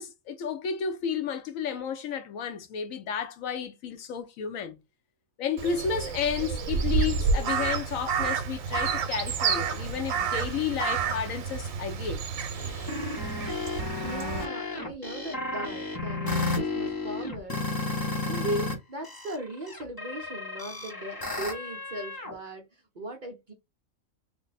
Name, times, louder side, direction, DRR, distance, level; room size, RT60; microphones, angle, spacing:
voice 1, 0.0-4.7 5.4-12.2, left 7 dB, 75° left, 1.0 m, -32 dB
Crow, 5.6-14.4, right 6 dB, 80° right, 1.0 m, -30 dB
sound 1, 12.5-18.7 19.0-22.3, left 3 dB, 20° left, 0.6 m, -33 dB
voice 2, 14.0-17.6 18.2-23.5, right 1 dB, 50° right, 0.6 m, -38 dB
3.3 x 2.1 x 4.0 m
omnidirectional pair, 1.4 m